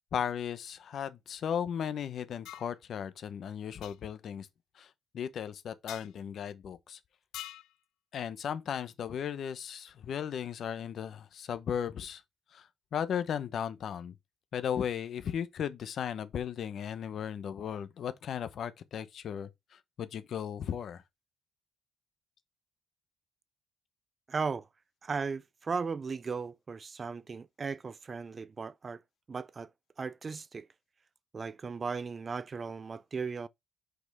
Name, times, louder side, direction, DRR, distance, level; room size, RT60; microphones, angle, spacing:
voice 1, 0.1-4.5 4.8-4.9 5.1-7.0 8.1-12.2 12.5-14.1 14.5-19.5 20.0-21.0, left 8 dB, 50° left, 0.8 m, -36 dB
sound 1, 2.4-2.7 3.8-4.0 5.9-6.1 7.3-7.7, left 13 dB, 90° left, 0.6 m, -44 dB
voice 2, 24.3-24.7 25.0-29.0 29.3-29.7 30.0-30.7 31.3-33.5, right 5 dB, 25° right, 0.3 m, -36 dB
6.1 x 5.2 x 3.4 m
cardioid pair, 155°, 0 cm